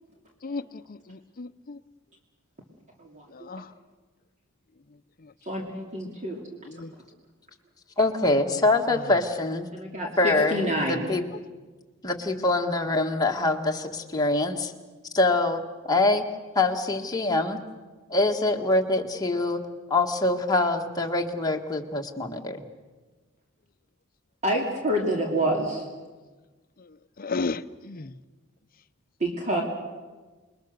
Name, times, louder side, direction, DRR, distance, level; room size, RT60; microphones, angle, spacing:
voice 1, 0.4-1.8 3.3-3.7 5.2-5.3 6.6-6.9 8.9-9.1 26.8-26.9 27.2-28.1, left 3 dB, 45° left, 13 dB, 0.7 m, -34 dB
voice 2, 5.5-6.4 8.5-8.6 9.7-11.2 24.4-25.8 29.2-29.6, right 1 dB, 35° right, 0 dB, 2.7 m, -27 dB
voice 3, 8.0-9.7 10.2-11.2 12.0-14.7 15.1-15.6 15.9-16.2 16.6-17.6 18.1-19.6 19.9-22.6, left 2 dB, 20° left, 2 dB, 1.7 m, -24 dB
28.0 x 21.0 x 6.7 m, 1.3 s
head